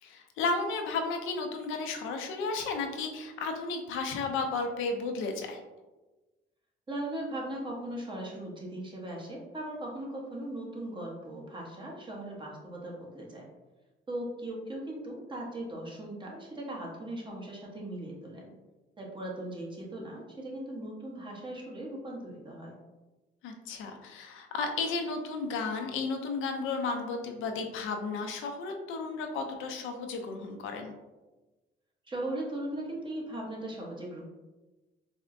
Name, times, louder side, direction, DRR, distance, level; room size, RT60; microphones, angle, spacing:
voice 1, 0.0-5.6 23.4-30.9, left 4 dB, 90° left, 4 dB, 0.5 m, -33 dB
voice 2, 6.9-13.4 14.1-18.5 19.0-22.7 32.0-34.2, right 1 dB, 25° right, -3 dB, 1.0 m, -38 dB
4.2 x 2.0 x 2.5 m, 1.2 s
cardioid pair, 90°, 20 cm